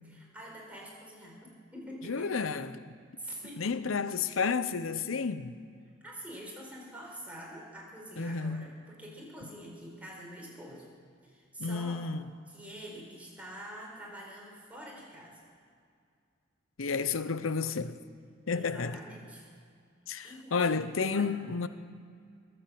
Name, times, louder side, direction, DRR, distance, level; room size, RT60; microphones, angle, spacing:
voice 1, 0.0-2.5 3.2-3.7 6.0-10.8 11.2-12.0 12.5-15.4 18.5-19.4 20.2-20.8 21.1-21.3, equal, 5° right, 4.7 m, -46 dB
voice 2, 2.0-3.0 3.6-5.6 8.2-8.7 11.6-12.3 16.8-18.0 18.5-19.0 20.1-21.7, left 5 dB, 85° left, 0.8 m, -31 dB
21.5 x 8.1 x 7.8 m
head